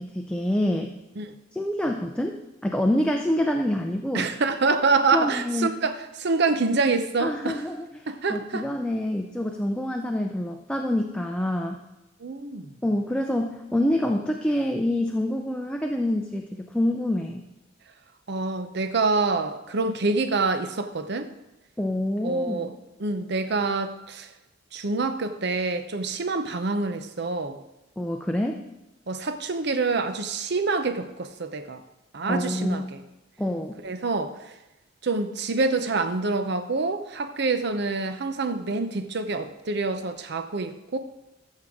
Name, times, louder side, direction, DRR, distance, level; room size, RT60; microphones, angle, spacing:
voice 1, 0.0-1.0 1.5-4.3 5.1-5.8 7.2-11.8 12.8-17.4 21.8-22.7 28.0-28.6 32.2-32.8 33.4-33.8, left 1 dB, 5° left, 3 dB, 0.5 m, -27 dB
voice 2, 4.1-7.6 8.1-8.7 12.2-12.8 18.3-21.3 22.2-22.7 23.0-24.3 24.7-27.6 29.1-31.8 32.1-33.0 33.8-34.5 35.0-41.0, right 3 dB, 60° right, 9 dB, 0.7 m, -26 dB
14.5 x 6.6 x 3.7 m, 0.98 s
head